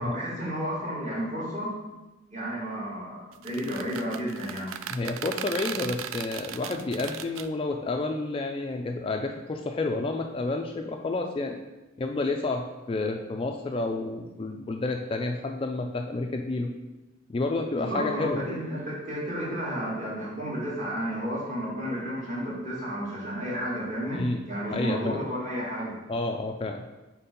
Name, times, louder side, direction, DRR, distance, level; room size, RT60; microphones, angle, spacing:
voice 1, 0.0-1.8 2.3-4.7 17.7-26.0, equal, 35° right, -7 dB, 2.1 m, -32 dB
sound 1, 3.3-7.5, right 9 dB, 80° right, 0.3 m, -37 dB
voice 2, 4.9-11.6 12.0-16.7 17.3-18.4 24.1-24.4 24.7-25.2 26.1-26.8, left 2 dB, 25° left, 3 dB, 0.3 m, -30 dB
4.5 x 4.3 x 5.2 m, 1.1 s
head